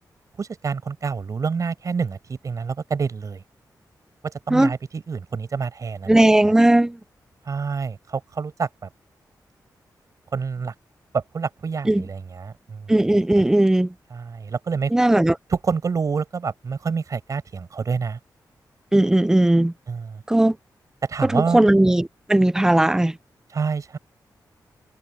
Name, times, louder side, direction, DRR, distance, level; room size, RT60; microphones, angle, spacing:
voice 1, 0.4-3.4 4.2-6.2 6.4-6.5 7.4-8.7 10.3-10.7 11.1-12.9 14.1-14.9 15.5-18.2 19.9-20.2 21.1-21.6 23.5-24.0, right 5 dB, 50° right, 5.4 m, -27 dB
voice 2, 6.1-6.9 11.9-12.0 12.9-13.9 14.9-15.3 18.9-19.7 20.3-20.5 21.3-23.1, right 1 dB, 10° right, 0.4 m, -17 dB
wide cardioid pair, 130°, 7 cm